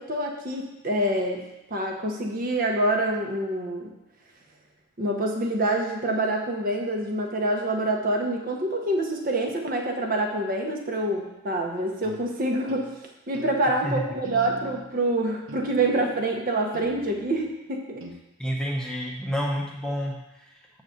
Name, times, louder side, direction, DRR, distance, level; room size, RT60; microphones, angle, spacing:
voice 1, 0.0-3.9 5.0-12.9 13.3-18.0, right 1 dB, 45° right, 2 dB, 0.9 m, -26 dB
sound 1, 12.0-12.2 12.7-12.9 13.3-13.6 14.2-14.9 15.5-16.2 16.7-17.5 18.0-18.1, right 1 dB, 80° right, 1.1 m, -42 dB
voice 2, 18.4-20.2 20.4-20.5, equal, 5° left, -2 dB, 0.8 m, -29 dB
6.6 x 4.0 x 6.3 m, 0.93 s
head